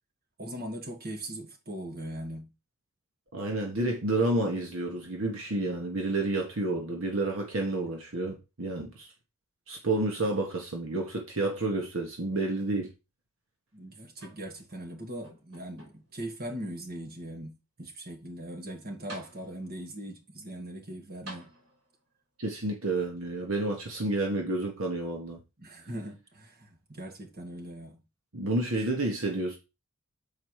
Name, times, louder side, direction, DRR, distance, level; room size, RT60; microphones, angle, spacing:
voice 1, 0.4-2.5 13.7-17.5 17.8-21.5 25.6-28.0, right 1 dB, 40° right, 1.8 m, -40 dB
voice 2, 3.3-9.1 9.7-12.9 22.4-25.4 28.3-29.6, right 2 dB, 65° right, 1.4 m, -30 dB
sound 1, 14.2-14.8 15.2-16.2 16.9-17.0 18.6-18.7 19.1-19.9 21.2-22.1 23.2-23.3, right 1 dB, 85° right, 3.8 m, -49 dB
7.2 x 4.5 x 4.8 m
head